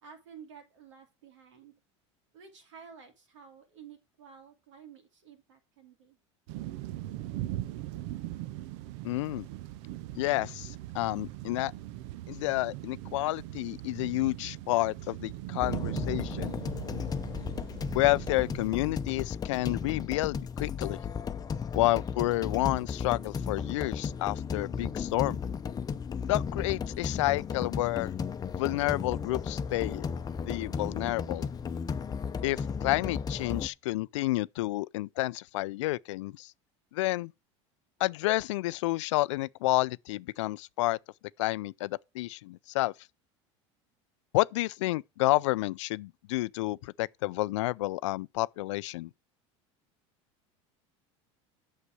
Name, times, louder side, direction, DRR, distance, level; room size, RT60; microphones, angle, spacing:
voice 1, 0.0-1.7 2.3-6.2, right 7 dB, 90° right, 2.8 m, -52 dB
sound 1, 6.5-18.7, right 15 dB, 70° right, 0.7 m, -40 dB
voice 2, 9.0-9.5 10.1-11.7 12.3-16.6 17.9-21.0 21.7-25.4 26.3-28.1 28.6-30.0 30.5-31.5 32.4-36.5 36.9-37.3 38.0-41.0 41.4-42.9 44.3-49.1, left 19 dB, 80° left, 0.4 m, -30 dB
sound 2, 15.6-33.7, left 6 dB, 25° left, 0.7 m, -35 dB
8.4 x 6.6 x 4.7 m
supercardioid pair, 100°, 15 cm